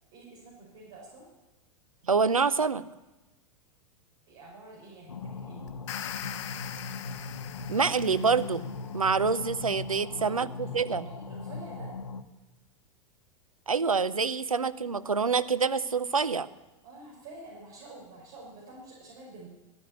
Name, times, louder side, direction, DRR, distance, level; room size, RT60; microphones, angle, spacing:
voice 1, 0.1-1.3 4.3-5.7 10.0-11.9 16.8-19.5, right 2 dB, 50° right, -4 dB, 5.6 m, -48 dB
voice 2, 2.1-2.8 7.7-8.6 8.9-11.1 13.7-16.5, right 5 dB, 85° right, 15 dB, 0.7 m, -26 dB
sound 1, 5.1-12.2, left 4 dB, 80° left, 0.9 m, -39 dB
sound 2, 5.7-8.9, left 11 dB, 55° left, 1.1 m, -41 dB
13.5 x 9.5 x 9.5 m, 1.1 s
figure-of-eight pair, 95°, 17 cm